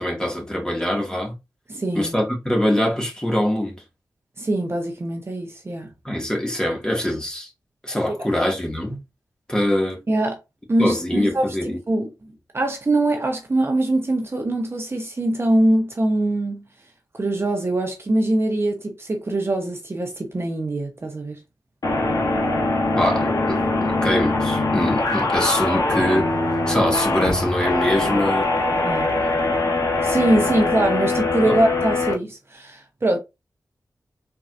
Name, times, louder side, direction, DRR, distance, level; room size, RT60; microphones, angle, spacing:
voice 1, 0.0-1.3 1.9-3.8 6.0-7.5 7.8-9.0 9.5-10.0 10.8-11.8 23.0-28.5 29.2-29.7 31.5-31.6, left 1 dB, 10° left, 1.7 m, -23 dB
voice 2, 1.7-2.1 4.4-5.9 8.2-8.3 10.1-10.4 10.7-16.7 17.1-21.4 28.8-29.1 30.0-33.2, right 1 dB, 35° right, 0.9 m, -23 dB
sound 1, 21.8-32.1, left 2 dB, 60° left, 1.3 m, -22 dB
4.7 x 3.8 x 2.5 m
wide cardioid pair, 95°, 7 cm